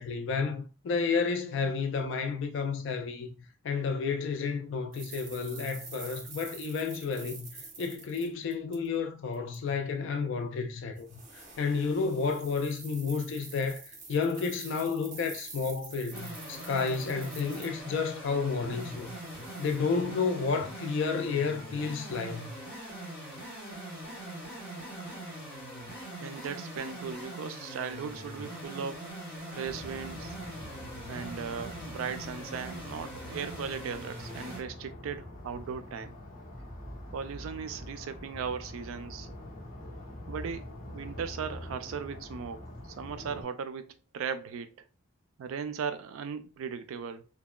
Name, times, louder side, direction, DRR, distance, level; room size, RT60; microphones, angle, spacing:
voice 1, 0.0-3.3 3.6-7.5 7.8-11.1 11.3-13.8 14.1-19.1 19.6-22.5, left 5 dB, 65° left, 0.3 m, -31 dB
sound 1, 4.9-9.0 9.3-9.6 11.0-18.1 18.5-19.8, right 3 dB, 40° right, 0.7 m, -47 dB
sound 2, 16.1-34.6, right 1 dB, 10° left, 1.4 m, -42 dB
voice 2, 24.8-25.2 26.2-29.2 29.5-30.4 31.1-36.2 37.1-39.3 40.3-44.7 45.4-47.3, right 6 dB, 80° right, 0.3 m, -38 dB
sound 3, 29.6-43.4, left 1 dB, 40° left, 1.0 m, -45 dB
2.8 x 2.2 x 2.2 m
head